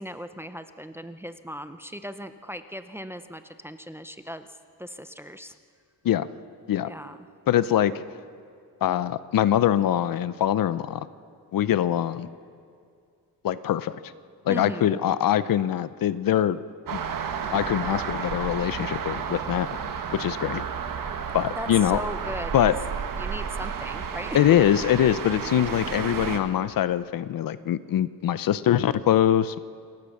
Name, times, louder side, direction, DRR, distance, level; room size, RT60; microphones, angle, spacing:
voice 1, 0.0-4.5 4.8-5.6 6.8-7.2 14.5-15.0 21.3-22.8 23.2-24.4, equal, 5° right, 10 dB, 0.5 m, -38 dB
voice 2, 7.5-7.9 8.8-11.1 11.5-12.3 13.4-14.0 14.4-16.6 16.9-17.0 17.5-19.7 20.1-20.6 21.3-22.0 22.5-22.7 24.3-29.6, left 11 dB, 60° left, 15 dB, 0.7 m, -23 dB
sound 1, 16.9-26.4, right 7 dB, 55° right, 1.6 m, -32 dB
27.5 x 15.5 x 6.6 m, 2.3 s
wide cardioid pair, 155°, 38 cm